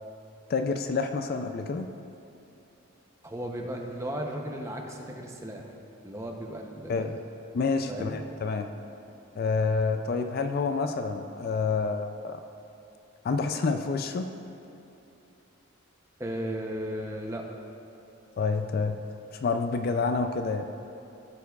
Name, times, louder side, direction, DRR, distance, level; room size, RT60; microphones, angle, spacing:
voice 1, 0.5-1.9 6.9-7.2 7.5-8.7 9.4-12.4 13.2-14.3 18.4-19.0 19.4-20.7, left 4 dB, 45° left, 7 dB, 0.3 m, -28 dB
voice 2, 3.2-5.7 6.0-7.1 7.9-8.2 16.2-17.5, right 1 dB, 15° right, 1 dB, 0.6 m, -35 dB
15.5 x 6.8 x 2.3 m, 2.9 s
head